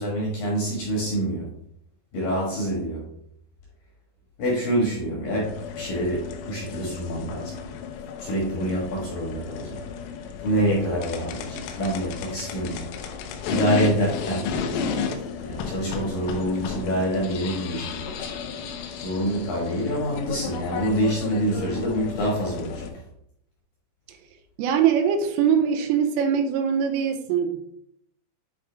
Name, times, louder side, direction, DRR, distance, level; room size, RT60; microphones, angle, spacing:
voice 1, 0.0-1.5 2.1-3.1 4.4-7.5 8.2-9.8 10.4-12.9 13.4-14.5 15.4-18.3 19.0-23.0, right 1 dB, 65° left, -4 dB, 2.4 m, -26 dB
sound 1, 5.4-22.9, left 6 dB, 80° left, 3.2 m, -33 dB
voice 2, 24.6-27.7, right 7 dB, 85° right, 5 dB, 3.2 m, -22 dB
10.0 x 3.9 x 3.4 m, 0.72 s
omnidirectional pair, 6.0 m